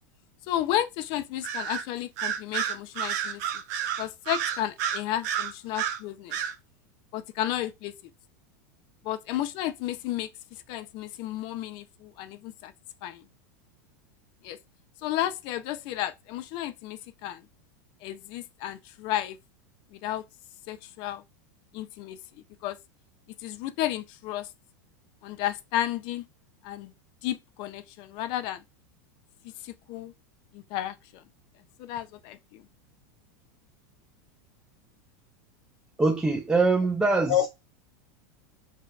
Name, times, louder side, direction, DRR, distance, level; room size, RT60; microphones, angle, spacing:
voice 1, 0.5-3.6 4.0-6.4 7.1-7.9 9.0-12.7 13.0-13.2 14.4-14.6 15.0-17.5 18.0-19.4 19.9-20.2 20.7-21.2 21.7-22.8 23.4-24.5 25.2-26.2 26.6-26.9 27.2-28.6 29.4-30.1 30.5-31.2 31.8-32.6 37.3-37.5, left 12 dB, 50° left, 0.5 m, -32 dB
Bird vocalization bird call bird song, 1.4-1.8 2.2-6.0 6.3-6.5, right 9 dB, 65° right, 0.7 m, -30 dB
voice 2, 36.0-37.4, right 3 dB, 10° right, 0.5 m, -23 dB
5.1 x 2.8 x 2.3 m
supercardioid pair, 120°, 10 cm